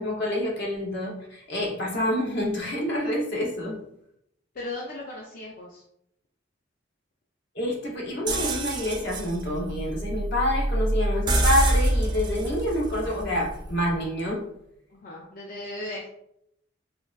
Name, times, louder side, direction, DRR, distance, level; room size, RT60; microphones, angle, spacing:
voice 1, 0.0-3.8 7.5-14.4, left 1 dB, 65° left, -2 dB, 0.8 m, -27 dB
voice 2, 4.5-5.8 14.9-16.1, left 2 dB, 45° left, -2 dB, 0.4 m, -37 dB
sound 1, 8.3-14.1, right 1 dB, 25° right, 0.3 m, -26 dB
3.7 x 2.2 x 2.3 m, 0.76 s
head